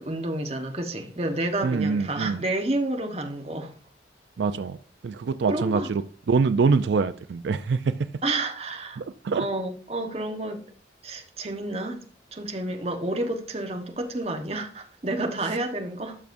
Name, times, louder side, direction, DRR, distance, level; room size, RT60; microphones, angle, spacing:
voice 1, 0.0-3.7 5.5-5.9 8.2-9.0 9.3-10.6 11.0-12.0 12.3-16.2, right 2 dB, 35° right, 1.0 m, -30 dB
voice 2, 1.6-2.4 4.4-4.8 5.0-6.0 6.3-7.9 9.0-9.5, right 4 dB, 75° right, 0.4 m, -24 dB
12.0 x 6.1 x 2.6 m
head